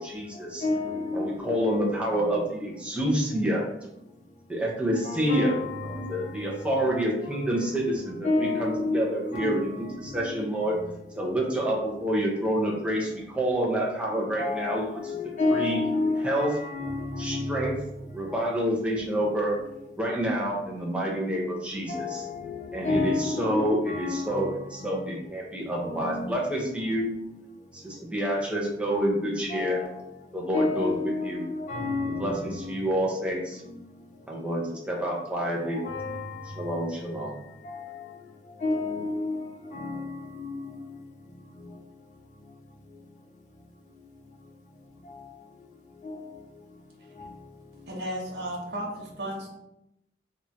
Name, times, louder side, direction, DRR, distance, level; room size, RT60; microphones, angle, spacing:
voice 1, 0.0-0.6 1.1-3.6 4.5-5.6 5.8-10.7 11.1-15.2 15.5-15.8 16.2-16.6 17.2-17.8 18.1-19.6 20.0-22.3 22.7-27.1 27.7-29.8 30.3-31.4 32.1-33.6 34.3-35.8 36.6-37.3, right 1 dB, 5° right, 0.5 m, -28 dB
voice 2, 0.6-1.6 5.0-6.1 6.6-6.8 8.2-9.9 10.2-10.4 10.8-10.9 14.4-17.7 21.9-24.5 24.8-25.1 25.8-26.3 29.5-30.0 30.5-32.7 35.8-36.7 37.6-38.0 38.6-40.8 46.0-46.2, left 3 dB, 45° left, 0.6 m, -30 dB
voice 3, 47.9-49.5, equal, 65° right, 0.6 m, -34 dB
2.1 x 2.0 x 3.8 m
head